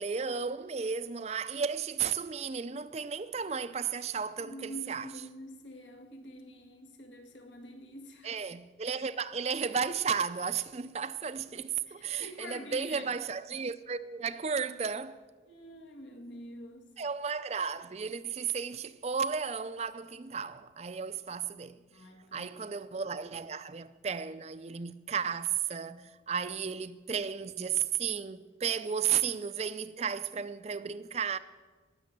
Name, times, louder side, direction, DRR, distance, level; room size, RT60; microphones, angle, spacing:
voice 1, 0.0-5.1 8.2-15.2 17.0-21.8 22.3-31.4, right 6 dB, 35° right, 0.4 m, -34 dB
voice 2, 4.4-8.4 11.9-13.2 15.5-16.9 21.9-22.5, equal, 80° left, 1.9 m, -46 dB
18.5 x 6.9 x 7.5 m
head